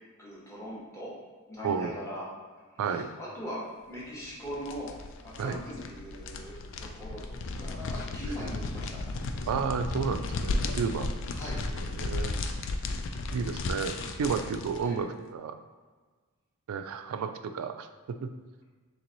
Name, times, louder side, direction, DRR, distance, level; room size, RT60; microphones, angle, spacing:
voice 1, 0.2-1.1 1.5-2.3 2.9-4.9 5.2-9.0 11.3-11.6 14.8-15.0, equal, 15° left, -6 dB, 1.0 m, -40 dB
voice 2, 1.6-2.0 2.8-3.1 5.4-5.6 8.3-8.5 9.4-11.1 11.7-12.3 13.3-15.6 16.7-18.3, right 5 dB, 70° right, 8 dB, 0.3 m, -32 dB
sound 1, 4.2-14.9, left 2 dB, 55° left, 0.3 m, -35 dB
3.3 x 3.0 x 3.9 m, 1.4 s
head